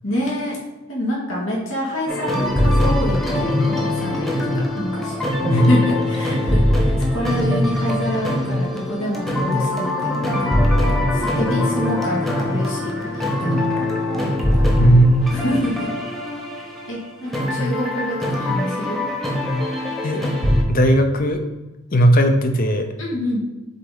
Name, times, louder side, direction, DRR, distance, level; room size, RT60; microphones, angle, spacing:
voice 1, 0.0-0.6 0.9-4.3 4.7-10.5 11.1-13.6 14.2-14.6 15.3-16.0 16.5-19.1 23.0-23.4, equal, 80° left, -4 dB, 2.1 m, -27 dB
sound 1, 2.1-20.6, left 1 dB, ahead, 1.0 m, -22 dB
voice 2, 5.5-5.8 14.8-15.3 20.0-20.2 20.7-21.4 21.9-22.9, equal, 45° left, 6 dB, 0.6 m, -16 dB
7.4 x 4.0 x 3.9 m, 1.1 s
head